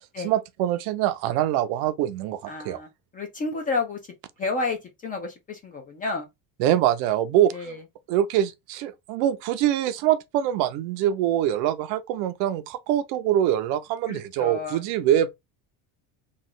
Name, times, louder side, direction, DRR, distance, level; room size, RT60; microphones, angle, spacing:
voice 1, 0.2-2.8 6.6-7.5 8.1-15.3, right 11 dB, 60° right, 0.5 m, -24 dB
voice 2, 2.5-2.9 3.1-4.0 4.4-6.3 7.5-7.8 14.1-14.8, left 3 dB, 20° left, 0.3 m, -30 dB
3.1 x 2.3 x 3.7 m
cardioid pair, 170°, 43 cm